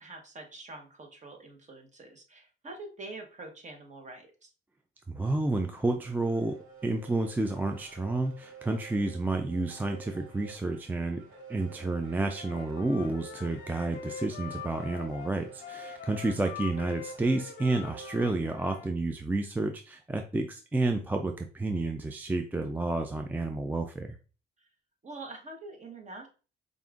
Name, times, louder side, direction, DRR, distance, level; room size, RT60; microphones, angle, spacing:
voice 1, 0.0-4.5 16.2-16.4 24.6-24.7 25.0-26.3, right 2 dB, 35° right, 3 dB, 1.1 m, -45 dB
voice 2, 5.1-6.6 6.8-11.2 11.5-24.2, right 2 dB, 10° right, 5 dB, 0.3 m, -30 dB
sound 1, 5.8-18.4, right 6 dB, 85° right, 1.3 m, -50 dB
Wind instrument woodwind instrument, 12.3-18.9, left 9 dB, 55° left, 0.6 m, -44 dB
5.2 x 2.5 x 2.4 m, 0.36 s
cardioid pair, 90°, 20 cm